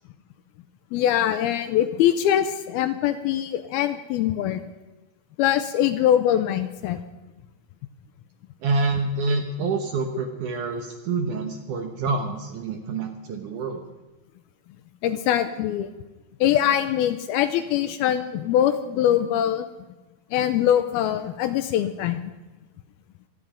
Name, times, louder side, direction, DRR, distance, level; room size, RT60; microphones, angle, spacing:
voice 1, 0.9-4.6 5.4-7.0 15.0-15.9 16.4-19.7 20.3-22.3, left 11 dB, 80° left, 10 dB, 2.4 m, -23 dB
voice 2, 8.6-13.9, right 3 dB, 65° right, 5 dB, 2.1 m, -27 dB
25.5 x 9.7 x 5.1 m, 1.1 s
omnidirectional pair, 4.8 m